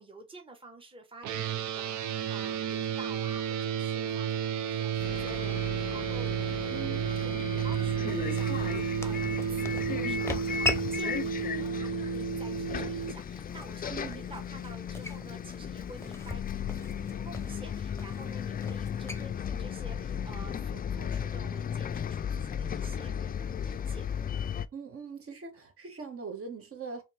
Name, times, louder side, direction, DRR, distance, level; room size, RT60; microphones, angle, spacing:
voice 1, 0.0-16.6 16.9-24.1, right 2 dB, 15° right, 1.1 m, -50 dB
sound 1, 1.2-13.1, right 8 dB, 70° right, 0.7 m, -32 dB
sound 2, 4.6-20.7, left 2 dB, 10° left, 0.8 m, -42 dB
Bus, 5.0-24.7, left 8 dB, 30° left, 0.4 m, -36 dB
voice 2, 6.7-7.0 13.9-14.2 24.7-27.0, right 5 dB, 50° right, 1.5 m, -41 dB
4.2 x 3.1 x 3.3 m
cardioid pair, 90°, 30 cm